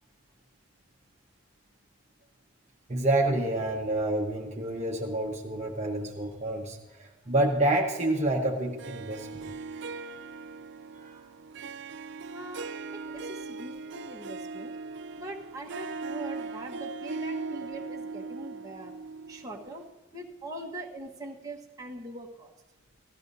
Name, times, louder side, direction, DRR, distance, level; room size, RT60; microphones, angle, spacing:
voice 1, 2.9-9.5 10.9-11.2, right 1 dB, 30° right, -2 dB, 1.0 m, -28 dB
Harp, 8.8-19.9, right 4 dB, 55° right, 0.4 m, -39 dB
voice 2, 12.3-14.8 15.2-18.9 19.3-22.5, right 1 dB, 15° right, -2 dB, 1.3 m, -42 dB
17.5 x 14.0 x 2.7 m, 1.1 s
head